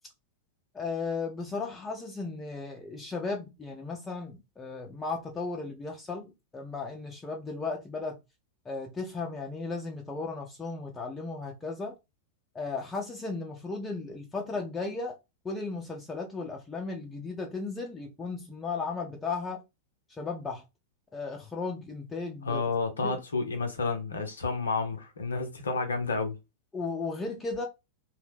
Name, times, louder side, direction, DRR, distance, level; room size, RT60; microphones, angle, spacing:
voice 1, 0.7-8.2 8.7-11.9 12.5-15.2 15.4-19.6 20.2-20.6 21.1-22.6 23.0-23.2 26.7-27.6, left 4 dB, 15° left, 0.5 m, -35 dB
voice 2, 22.4-26.4, left 4 dB, 70° left, 0.6 m, -30 dB
2.7 x 2.0 x 3.3 m
figure-of-eight pair, 90°, 0 cm